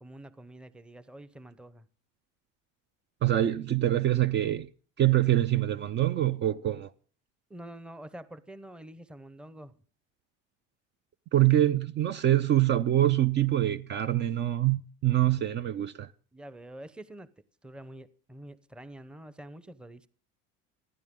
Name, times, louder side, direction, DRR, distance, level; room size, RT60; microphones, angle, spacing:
voice 1, 0.0-1.9 7.5-9.8 16.3-17.3 17.6-20.1, right 1 dB, 5° right, 0.8 m, -46 dB
voice 2, 3.2-4.7 5.0-6.9 11.3-16.1, right 13 dB, 35° right, 0.6 m, -25 dB
29.0 x 10.5 x 3.7 m
cardioid pair, 155°, 32 cm